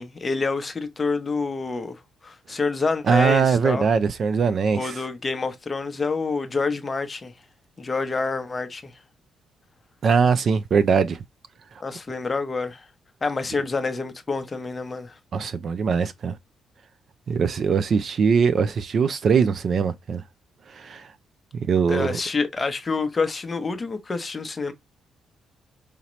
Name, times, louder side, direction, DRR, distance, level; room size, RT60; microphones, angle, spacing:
voice 1, 0.0-3.9 4.7-7.3 7.8-8.9 11.8-12.9 13.2-15.2 21.9-24.7, left 4 dB, 20° left, 0.7 m, -27 dB
voice 2, 3.1-5.0 10.0-11.2 15.3-16.4 17.3-20.2 20.7-21.1 21.5-22.2, right 6 dB, 40° right, 0.3 m, -21 dB
5.0 x 2.8 x 3.0 m
cardioid pair, 165°, 0 cm